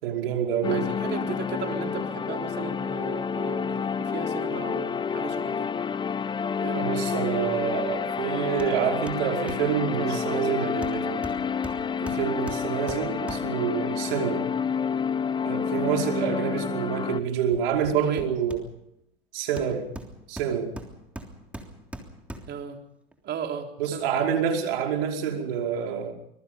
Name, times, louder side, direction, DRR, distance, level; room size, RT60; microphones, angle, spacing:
voice 1, 0.0-0.9 6.8-11.2 12.0-14.4 15.4-18.6 19.3-19.9 20.3-20.7 23.8-26.1, right 7 dB, 65° right, 3 dB, 5.3 m, -27 dB
sound 1, 0.6-17.2, left 6 dB, 15° left, 0.8 m, -29 dB
voice 2, 0.7-5.7 6.6-6.9 10.0-11.0 18.0-18.3 22.5-22.8 23.2-24.3, right 7 dB, 35° right, 4 dB, 4.0 m, -36 dB
Hammer, 8.6-8.8 9.1-9.7 10.8-13.7 17.5-19.0 19.6-22.7 23.1-23.2, right 1 dB, 5° right, 3.3 m, -41 dB
25.5 x 22.0 x 5.4 m, 0.75 s
hypercardioid pair, 110°, 31 cm